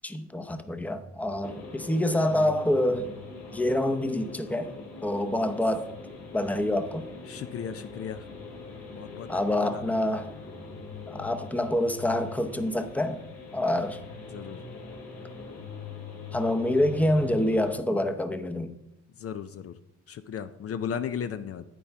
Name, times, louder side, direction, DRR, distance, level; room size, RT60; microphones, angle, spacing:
voice 1, 0.0-3.1 3.5-4.8 5.0-5.9 6.3-7.1 9.3-10.3 11.1-13.2 13.5-14.0 16.3-18.7, left 1 dB, 5° left, 0.7 m, -26 dB
sound 1, 1.4-17.8, left 4 dB, 65° left, 2.6 m, -42 dB
voice 2, 7.3-8.2 8.9-10.1 14.3-14.6 19.2-19.7 20.1-21.6, left 8 dB, 50° left, 0.5 m, -36 dB
10.0 x 8.8 x 3.5 m
cardioid pair, 90°, 30 cm